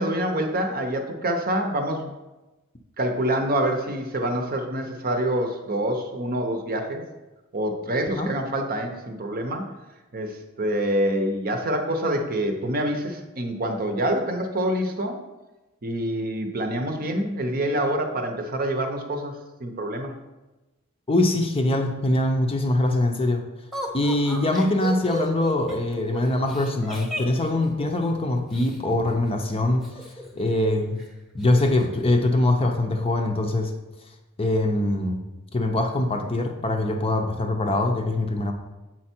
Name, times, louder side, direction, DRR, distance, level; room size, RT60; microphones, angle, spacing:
voice 1, 0.0-2.1 3.0-7.0 7.5-9.7 10.1-15.2 15.8-20.1, right 1 dB, 40° right, 4 dB, 0.8 m, -26 dB
voice 2, 21.1-23.4 23.9-29.9 30.4-31.0 31.3-33.7 34.4-35.2 35.5-38.5, left 1 dB, 25° left, 3 dB, 0.6 m, -23 dB
Laughter, 23.7-28.8 29.8-30.7 31.0-31.1 31.4-31.9, equal, ahead, 0.9 m, -35 dB
7.5 x 4.5 x 4.4 m, 1.1 s
head